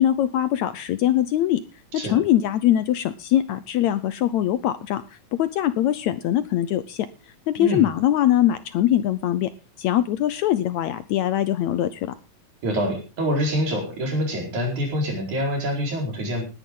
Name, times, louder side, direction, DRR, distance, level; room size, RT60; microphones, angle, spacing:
voice 1, 0.0-1.6 1.9-5.0 5.3-7.1 7.5-9.5 9.8-12.1, left 12 dB, 75° left, 13 dB, 1.9 m, -22 dB
voice 2, 12.6-16.4, equal, 60° right, 1 dB, 6.0 m, -25 dB
19.0 x 10.5 x 3.8 m, 0.32 s
omnidirectional pair, 3.7 m